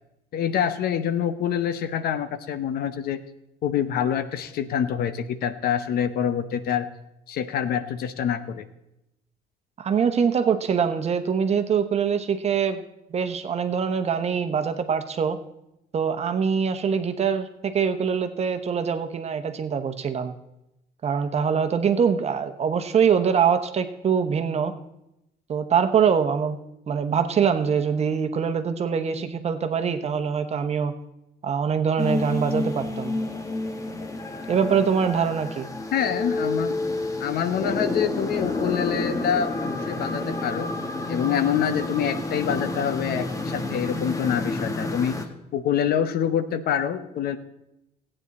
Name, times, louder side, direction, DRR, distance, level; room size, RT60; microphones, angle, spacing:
voice 1, 0.3-3.2 3.6-6.9 7.3-8.6 35.9-36.8 37.2-40.7 41.1-45.2 45.5-47.4, left 9 dB, 65° left, 11 dB, 0.8 m, -26 dB
voice 2, 9.8-12.8 13.1-15.4 15.9-20.3 21.0-24.7 25.5-26.6 26.9-30.9 31.4-33.2 34.5-35.7, right 7 dB, 40° right, 9 dB, 1.0 m, -23 dB
sound 1, 32.0-45.3, left 2 dB, 20° left, 1.1 m, -29 dB
14.5 x 8.9 x 4.1 m, 0.87 s
cardioid pair, 110°, 17 cm